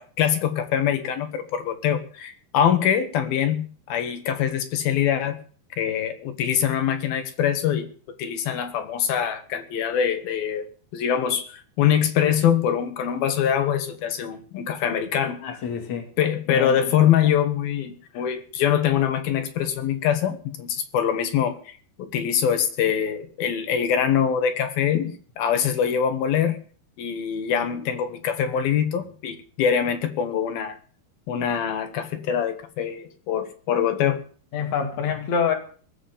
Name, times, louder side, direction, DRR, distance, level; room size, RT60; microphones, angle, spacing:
voice 1, 0.0-5.4 5.8-7.9 8.2-10.7 10.9-15.6 16.2-26.6 27.0-30.8 31.3-34.2, left 9 dB, 75° left, 8 dB, 3.5 m, -24 dB
voice 2, 15.4-16.1 16.5-16.8 34.5-35.5, left 6 dB, 50° left, 4 dB, 3.7 m, -26 dB
19.0 x 7.6 x 9.1 m, 0.43 s
omnidirectional pair, 4.3 m